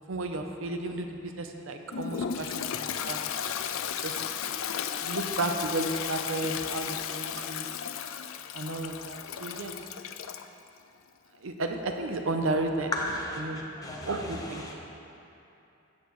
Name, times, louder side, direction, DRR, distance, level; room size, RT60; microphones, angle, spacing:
voice 1, 0.1-3.2 4.0-4.2 5.0-7.7 8.5-9.7 11.4-12.9 13.4-13.6 14.0-14.6, right 2 dB, 65° right, 4 dB, 0.7 m, -33 dB
Toilet flush, 1.9-10.5, left 8 dB, 70° left, 0.4 m, -34 dB
voice 2, 12.9-13.2 13.8-14.1 14.7-14.8, left 2 dB, 15° left, -2 dB, 1.0 m, -32 dB
13.5 x 8.4 x 3.1 m, 2.8 s
head